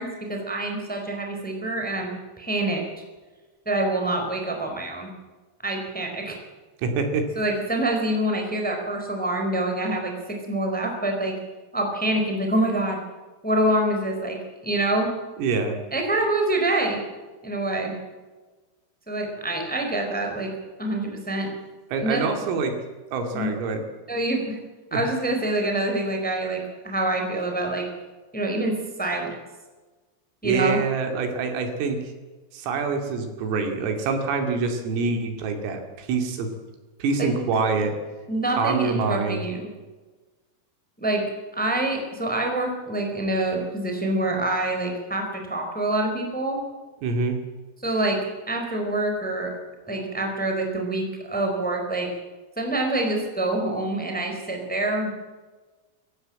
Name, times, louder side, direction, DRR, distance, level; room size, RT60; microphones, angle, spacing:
voice 1, 0.0-2.8 3.6-5.1 5.6-6.4 7.3-11.3 11.7-13.0 13.4-14.4 14.6-15.1 15.9-17.0 17.4-17.9 19.1-20.5 20.8-21.5 22.0-22.3 23.3-23.5 24.1-24.6 24.9-27.8 28.3-29.3 30.4-30.8 37.2-37.4 38.3-39.7 41.0-46.6 47.8-48.2 48.5-49.5 49.8-52.1 52.5-55.1, right 1 dB, ahead, 2 dB, 3.5 m, -26 dB
voice 2, 6.8-7.3 15.4-15.8 21.9-22.8 23.1-23.8 24.9-25.0 30.4-32.0 32.5-36.5 37.0-38.0 38.5-39.4 47.0-47.4, right 4 dB, 85° right, 5 dB, 5.3 m, -25 dB
26.0 x 15.0 x 7.8 m, 1.3 s
omnidirectional pair, 5.8 m